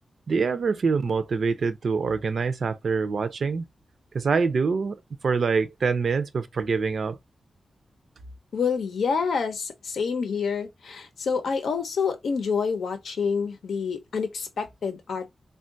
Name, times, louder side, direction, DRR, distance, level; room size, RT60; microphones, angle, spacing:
voice 1, 0.3-3.6 4.1-5.0 5.2-7.2, right 5 dB, 55° right, 0.4 m, -25 dB
voice 2, 8.5-15.3, left 5 dB, 85° left, 0.7 m, -27 dB
3.5 x 2.2 x 2.5 m
wide cardioid pair, 160°, 0 cm